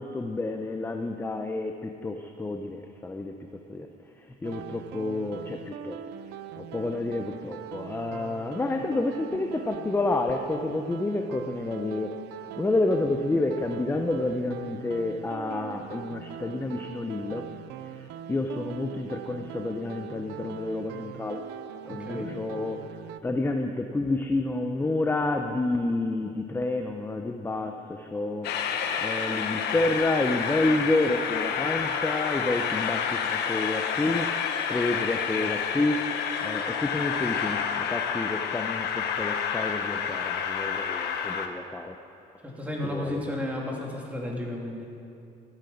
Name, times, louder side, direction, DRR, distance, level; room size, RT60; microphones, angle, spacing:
voice 1, 0.0-3.3 3.7-3.9 4.4-6.0 6.6-12.2 12.6-17.5 17.8-17.9 18.3-21.5 21.9-22.8 23.2-36.1 36.4-42.0 42.8-43.2, left 2 dB, 15° left, 5 dB, 0.7 m, -29 dB
sound 1, 4.4-23.2, right 8 dB, 80° right, 0.6 m, -41 dB
voice 2, 21.8-22.3 42.4-44.9, left 1 dB, 10° right, -2 dB, 2.8 m, -33 dB
Train, 28.4-41.5, left 7 dB, 75° left, 1.1 m, -29 dB
14.0 x 9.0 x 7.1 m, 2.6 s
cardioid pair, 110°, 17 cm